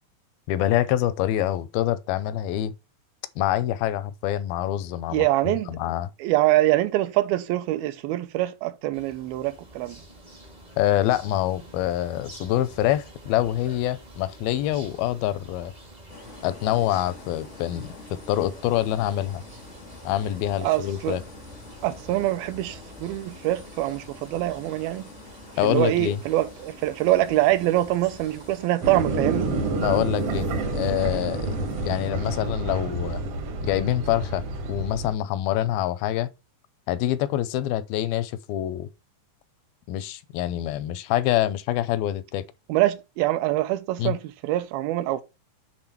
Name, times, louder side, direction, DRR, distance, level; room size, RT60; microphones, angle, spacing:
voice 1, 0.5-2.7 3.4-6.1 10.8-15.7 16.4-19.4 20.1-21.2 25.6-26.2 29.8-30.5 30.7-33.2 33.6-34.4 34.7-36.3 36.9-38.9 39.9-42.4 44.0-44.2, left 13 dB, 80° left, 2.4 m, -25 dB
voice 2, 5.1-5.8 6.2-10.0 20.6-21.2 21.8-25.1 25.6-29.6 42.7-45.2, right 16 dB, 80° right, 2.4 m, -24 dB
sound 1, 8.9-28.7, equal, 40° right, 0.5 m, -47 dB
sound 2, 16.1-32.1, left 3 dB, 60° left, 0.7 m, -47 dB
sound 3, 28.8-35.1, right 3 dB, 60° right, 1.6 m, -28 dB
7.9 x 3.7 x 5.8 m
omnidirectional pair, 4.4 m